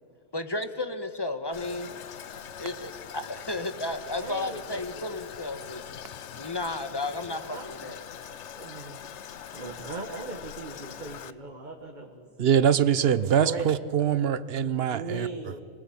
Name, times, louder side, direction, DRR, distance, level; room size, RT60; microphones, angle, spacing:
voice 1, 0.3-2.1 2.6-5.8 6.4-8.0, left 2 dB, 20° left, 1.4 m, -33 dB
Toilet flush, 1.5-11.3, left 9 dB, 85° left, 1.1 m, -43 dB
voice 2, 4.1-5.1 7.5-9.1 9.5-12.3 13.4-13.7 14.9-15.6, right 4 dB, 45° right, 1.7 m, -39 dB
voice 3, 12.4-15.3, right 8 dB, 65° right, 1.1 m, -23 dB
25.5 x 20.0 x 8.6 m
omnidirectional pair, 1.2 m